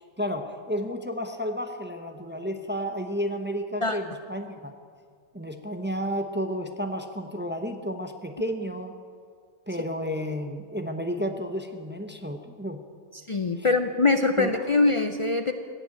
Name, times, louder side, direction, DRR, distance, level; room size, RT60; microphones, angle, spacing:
voice 1, 0.2-4.7 5.3-8.9 9.7-12.8 13.6-13.7 14.4-14.5, equal, 10° right, 6 dB, 0.6 m, -32 dB
voice 2, 13.3-15.5, left 3 dB, 45° left, 7 dB, 0.4 m, -23 dB
16.0 x 8.0 x 8.8 m, 2.1 s
omnidirectional pair, 1.3 m